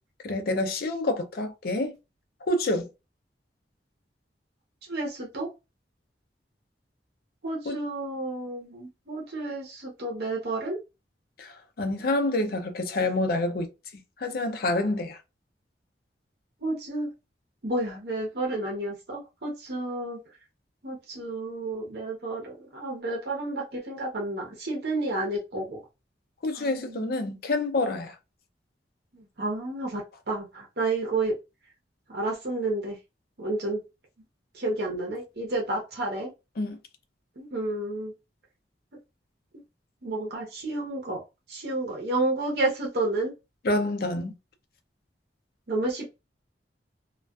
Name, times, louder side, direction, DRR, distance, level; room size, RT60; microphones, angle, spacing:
voice 1, 0.2-1.9 2.4-2.9 7.7-7.8 11.4-13.7 14.2-15.2 26.4-28.2 36.6-36.8 43.6-44.3, left 2 dB, 55° left, 0.5 m, -27 dB
voice 2, 4.9-5.5 7.4-10.8 16.6-17.1 17.6-20.2 20.8-25.8 26.5-27.2 29.1-31.4 32.1-33.0 33.4-33.8 34.5-36.3 37.4-38.1 40.0-41.2 41.5-43.3 45.7-46.0, right 2 dB, 65° right, 0.8 m, -31 dB
2.4 x 2.3 x 2.3 m
head